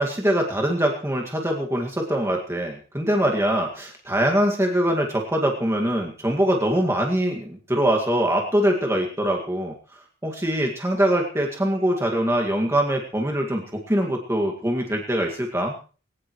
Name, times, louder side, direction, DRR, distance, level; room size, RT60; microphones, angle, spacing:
voice 1, 0.0-9.7 10.2-15.7, right 1 dB, 15° right, 1 dB, 2.0 m, -23 dB
20.5 x 19.5 x 3.2 m, 0.39 s
head